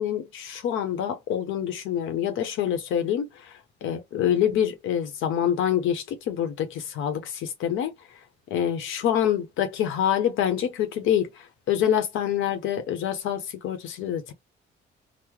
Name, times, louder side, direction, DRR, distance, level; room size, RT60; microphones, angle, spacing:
voice 1, 0.0-3.3 3.8-7.9 8.5-11.3 11.7-14.3, left 9 dB, 85° left, 0.9 m, -26 dB
4.0 x 2.1 x 3.0 m
cardioid pair, 90°, 20 cm